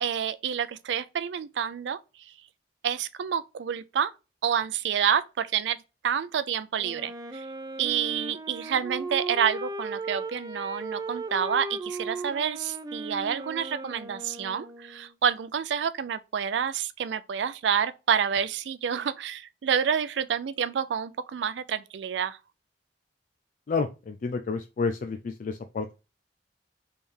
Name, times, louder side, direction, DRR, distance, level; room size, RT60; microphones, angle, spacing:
voice 1, 0.0-2.0 2.8-4.1 4.4-5.8 6.0-7.5 7.8-22.4, right 8 dB, 85° right, 0.4 m, -28 dB
Wind instrument woodwind instrument, 6.8-15.1, right 2 dB, 20° right, 0.5 m, -37 dB
voice 2, 23.7-25.9, left 4 dB, 50° left, 0.4 m, -30 dB
3.6 x 3.4 x 4.2 m
head